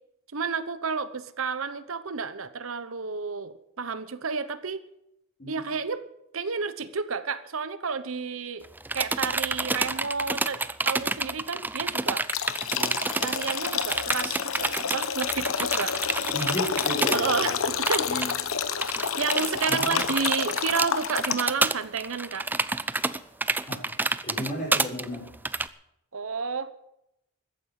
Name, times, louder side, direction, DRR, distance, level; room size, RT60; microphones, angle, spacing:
voice 1, 0.3-4.8 5.5-6.0 6.3-8.6 8.9-12.2 13.2-16.0 17.1-18.2 19.2-22.5 26.1-26.7, right 5 dB, 70° right, 13 dB, 0.9 m, -31 dB
sound 1, 8.6-17.2 17.5-17.6 17.9-18.3 18.8-25.7, right 3 dB, 10° right, 0.4 m, -28 dB
sound 2, 12.3-21.6, left 7 dB, 75° left, 1.0 m, -29 dB
voice 2, 12.7-13.0 16.3-17.6 18.0-18.3 19.7-20.0 23.7-23.8 24.2-25.3, equal, 40° left, -4 dB, 5.4 m, -33 dB
14.5 x 9.6 x 7.5 m, 0.81 s
head